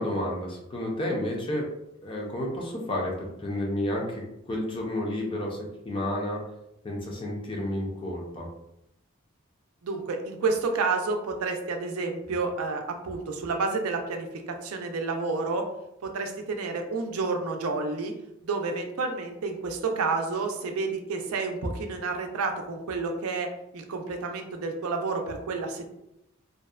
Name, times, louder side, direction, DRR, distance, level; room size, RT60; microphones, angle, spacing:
voice 1, 0.0-1.7 2.0-4.2 4.5-6.4 6.8-8.5, left 1 dB, 25° left, -1 dB, 0.5 m, -31 dB
voice 2, 9.8-15.6 16.0-18.1 18.4-23.5 23.7-25.9, right 4 dB, 90° right, 4 dB, 0.4 m, -30 dB
2.6 x 2.1 x 2.3 m, 0.82 s
head